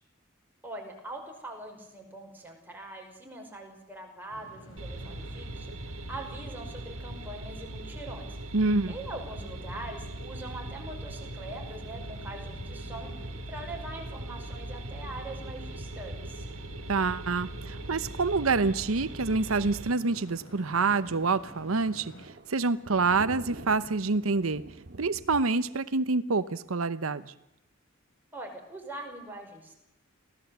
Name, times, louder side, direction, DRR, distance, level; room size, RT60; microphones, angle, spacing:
voice 1, 0.6-8.2 8.9-13.1 13.5-16.5 28.3-29.7, right 1 dB, 10° right, 1 dB, 5.7 m, -43 dB
sound 1, 4.3-22.3, equal, 80° left, 5.3 m, -49 dB
sound 2, 4.8-19.9, right 1 dB, 70° right, 2.5 m, -40 dB
voice 2, 8.5-8.9 16.9-24.6 25.0-27.3, right 4 dB, 90° right, 13 dB, 0.9 m, -27 dB
Thunder, 20.2-25.4, right 2 dB, 50° right, 1.1 m, -48 dB
25.0 x 16.5 x 8.0 m, 0.88 s
head